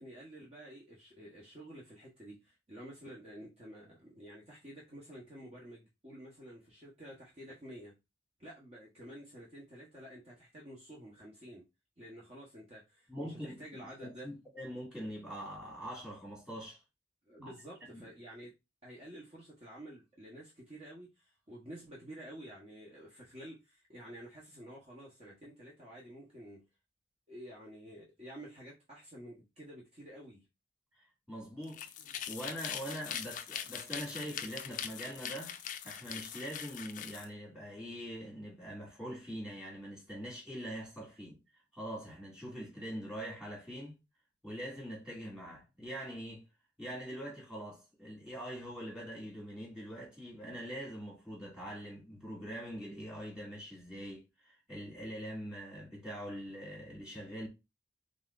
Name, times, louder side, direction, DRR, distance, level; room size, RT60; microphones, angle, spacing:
voice 1, 0.0-8.0 8.4-11.6 12.0-14.3 17.3-18.5 18.8-26.6 27.3-30.4, right 1 dB, 35° right, 1.0 m, -50 dB
voice 2, 13.1-13.6 14.0-16.8 17.4-17.5 17.9-18.0 31.0-31.9 32.3-35.6 35.8-41.4 41.7-44.0 44.4-46.5 46.8-57.5, equal, 5° right, 2.1 m, -43 dB
sound 1, 31.6-37.3, left 9 dB, 45° left, 0.4 m, -42 dB
4.1 x 3.7 x 2.4 m
head